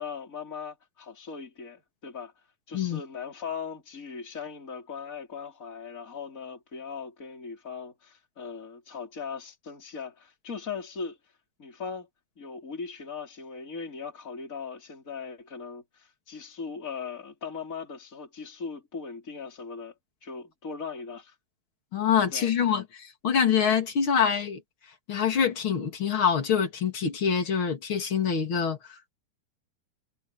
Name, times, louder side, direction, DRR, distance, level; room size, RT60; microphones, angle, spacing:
voice 1, 0.0-2.3 2.7-11.2 11.6-12.1 12.4-19.9 20.2-21.4 22.2-22.8, left 5 dB, 20° left, 4.8 m, -39 dB
voice 2, 21.9-24.6 25.1-29.1, left 7 dB, 35° left, 3.0 m, -25 dB
omnidirectional pair, 4.4 m